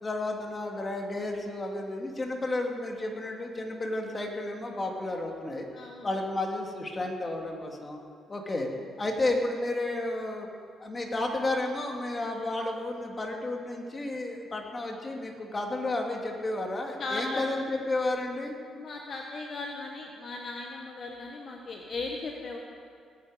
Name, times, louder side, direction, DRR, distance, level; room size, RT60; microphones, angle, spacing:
voice 1, 0.0-5.7 6.0-8.0 8.3-8.7 9.0-10.5 10.8-18.5, left 2 dB, 25° left, 1 dB, 2.3 m, -32 dB
voice 2, 5.7-6.1 17.0-17.5 18.7-22.6, left 3 dB, 50° left, 1 dB, 1.3 m, -37 dB
19.5 x 9.5 x 5.1 m, 2.2 s
cardioid pair, 90°, 0 cm